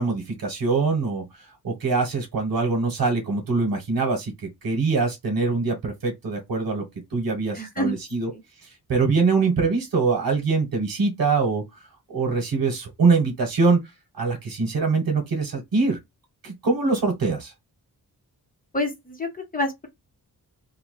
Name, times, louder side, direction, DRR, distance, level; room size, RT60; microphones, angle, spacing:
voice 1, 0.0-4.3 4.6-6.9 7.1-8.3 8.6-11.6 12.1-13.8 14.1-16.0 16.4-17.5, right 4 dB, 75° right, 1.2 m, -23 dB
voice 2, 7.5-8.0 8.3-8.4 18.7-19.9, left 1 dB, 25° left, 0.9 m, -28 dB
2.8 x 2.3 x 3.0 m
wide cardioid pair, 135°, 35 cm